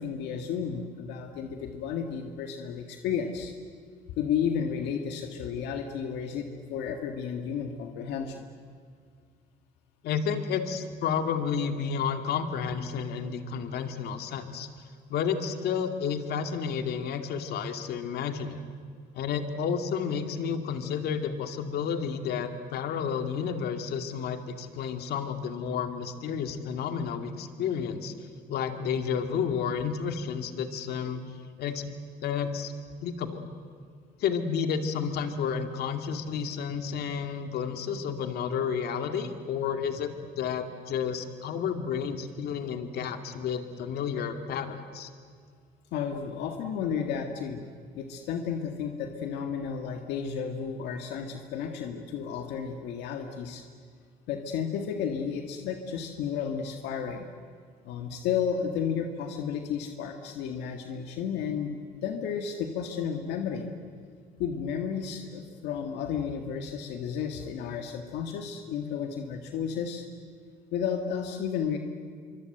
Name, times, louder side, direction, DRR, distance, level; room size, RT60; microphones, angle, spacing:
voice 1, 0.0-3.5 4.2-8.5 45.9-47.6 48.0-53.6 54.3-57.3 57.8-63.7 64.4-70.0 70.7-71.8, left 7 dB, 90° left, 4 dB, 1.9 m, -32 dB
voice 2, 10.0-14.7 15.1-18.6 19.1-28.1 28.5-31.2 31.6-31.9 32.2-32.7 33.0-33.5 34.2-45.1, left 7 dB, 70° left, 6 dB, 2.3 m, -31 dB
26.0 x 24.5 x 8.0 m, 2.1 s
cardioid pair, 110°, 17 cm